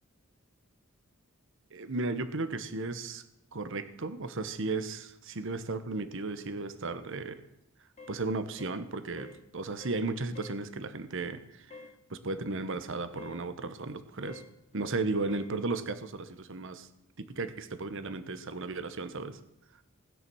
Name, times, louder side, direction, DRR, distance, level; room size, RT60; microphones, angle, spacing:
voice 1, 1.7-3.2 3.5-7.4 8.1-11.8 12.1-14.4 14.7-16.9 17.2-19.4, right 3 dB, 65° right, 11 dB, 1.1 m, -35 dB
sound 1, 8.0-8.2 8.6-8.8 9.2-9.4 9.8-10.1 10.3-10.6 11.7-12.0 13.2-13.4 14.3-14.5 15.3-15.5, left 3 dB, 30° left, 2.3 m, -48 dB
17.0 x 9.9 x 6.2 m, 0.86 s
head